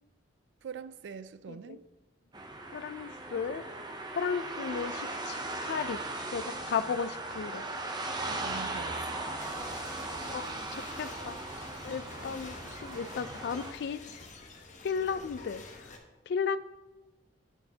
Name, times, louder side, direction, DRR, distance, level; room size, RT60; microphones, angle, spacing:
voice 1, 0.6-1.8 8.2-9.3, right 6 dB, 85° right, 0.3 m, -44 dB
sound 1, 2.3-13.7, right 2 dB, 25° right, 0.6 m, -38 dB
voice 2, 2.7-3.6 4.1-6.0 6.3-7.6 10.2-11.4 11.8-14.2 14.8-15.9 16.3-16.6, left 6 dB, 65° left, 0.3 m, -35 dB
sound 2, 9.4-16.0, left 3 dB, 45° left, 0.9 m, -48 dB
8.3 x 6.4 x 2.8 m
head